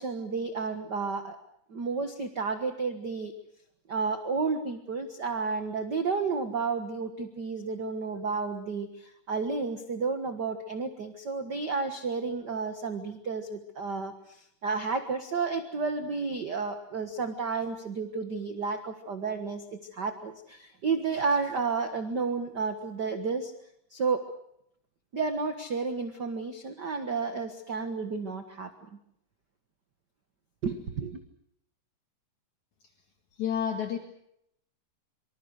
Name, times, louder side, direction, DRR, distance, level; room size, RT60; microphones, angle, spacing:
voice 1, 0.0-1.4 1.7-3.3 3.9-23.5 23.9-24.3 25.1-28.7 30.6-31.2, right 4 dB, 45° right, 8 dB, 1.4 m, -31 dB
voice 2, 33.4-34.0, left 8 dB, 60° left, 4 dB, 3.2 m, -29 dB
25.5 x 25.5 x 6.5 m, 0.76 s
omnidirectional pair, 4.0 m